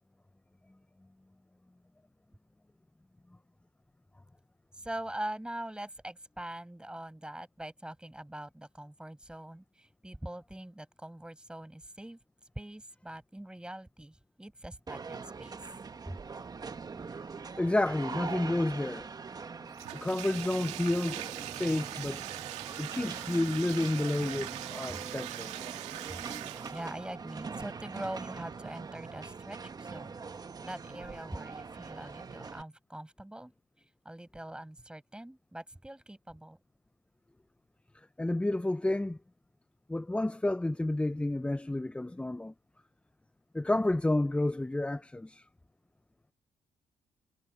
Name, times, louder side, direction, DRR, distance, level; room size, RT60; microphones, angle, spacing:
voice 1, 4.7-12.2 12.6-15.7 16.1-16.2 24.9-25.0 26.1-26.2 26.7-30.1 30.6-33.5 34.1-36.6, right 1 dB, 10° right, 6.9 m, -43 dB
sound 1, 14.9-32.6, right 5 dB, 35° right, 1.5 m, -43 dB
voice 2, 17.6-19.1 19.9-22.2 22.8-25.5 38.2-39.2 39.9-42.5 43.5-45.4, left 1 dB, 10° left, 0.8 m, -30 dB
Bathtub (filling or washing), 19.7-27.0, right 15 dB, 90° right, 2.0 m, -42 dB
supercardioid pair, 65°, 11 cm